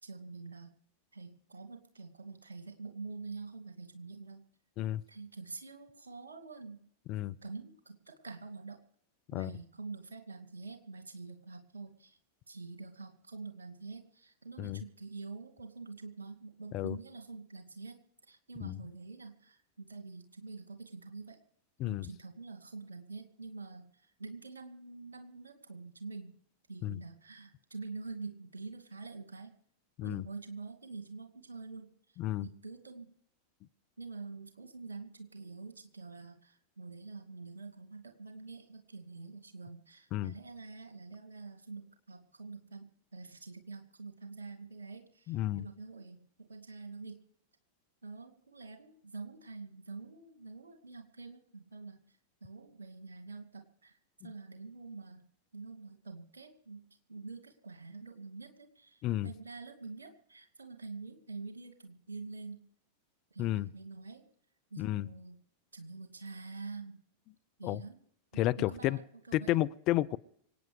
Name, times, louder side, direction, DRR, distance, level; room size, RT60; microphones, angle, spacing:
voice 1, 0.0-0.7 1.1-4.4 5.1-6.9 7.4-8.8 9.3-12.2 12.5-21.4 21.8-26.4 26.7-29.5 30.0-33.1 34.0-47.2 48.0-62.6 63.3-64.2 64.7-65.4 65.7-67.0 67.6-68.0 68.3-69.6, right 3 dB, 75° right, 7 dB, 2.4 m, -46 dB
voice 2, 32.2-32.5 40.1-40.3 45.3-45.7 54.2-54.3 59.0-59.3 63.4-63.7 64.8-65.1 67.6-67.8 68.4-69.0 69.3-70.2, left 15 dB, 40° left, 14 dB, 0.6 m, -32 dB
25.5 x 9.3 x 4.9 m, 0.66 s
figure-of-eight pair, 90°, 0 cm